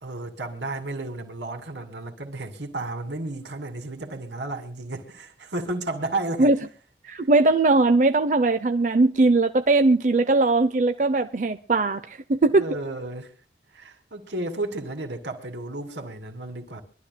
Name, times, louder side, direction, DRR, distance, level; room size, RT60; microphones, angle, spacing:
voice 1, 0.0-6.5 12.5-13.3 13.7-16.8, right 2 dB, 75° right, 2.3 m, -33 dB
voice 2, 7.0-12.7, right 3 dB, 40° right, 0.5 m, -20 dB
24.5 x 12.5 x 2.2 m
head